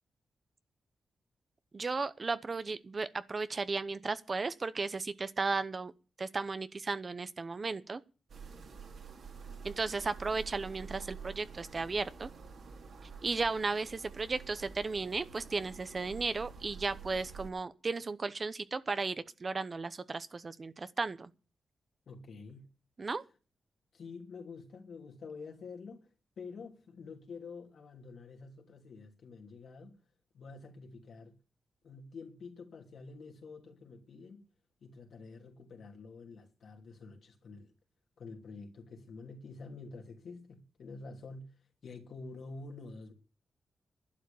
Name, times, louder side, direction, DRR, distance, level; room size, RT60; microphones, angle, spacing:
voice 1, 1.7-5.9 6.2-8.0 9.6-12.3 13.2-21.3 23.0-23.2, right 4 dB, 35° right, 0.8 m, -35 dB
sound 1, 8.3-17.5, right 5 dB, 70° right, 3.2 m, -48 dB
voice 2, 22.1-22.7 23.9-26.1 26.4-30.0 30.3-31.4 31.8-34.4 34.8-37.7 38.2-43.1, left 4 dB, 65° left, 3.1 m, -48 dB
11.5 x 10.0 x 7.0 m
wide cardioid pair, 120°, 0 cm